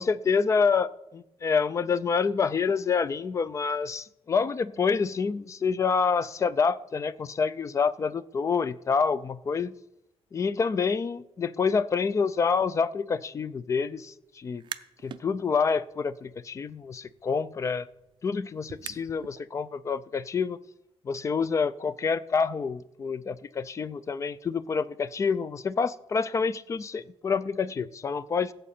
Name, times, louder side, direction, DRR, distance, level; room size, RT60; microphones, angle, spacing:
voice 1, 0.0-9.7 10.3-14.6 15.0-17.9 18.2-20.6 21.0-28.5, left 5 dB, 30° left, 0.3 m, -27 dB
sound 1, 14.4-15.2 15.6-19.4, right 9 dB, 45° right, 0.4 m, -45 dB
16.0 x 7.6 x 4.3 m
wide cardioid pair, 165°, 11 cm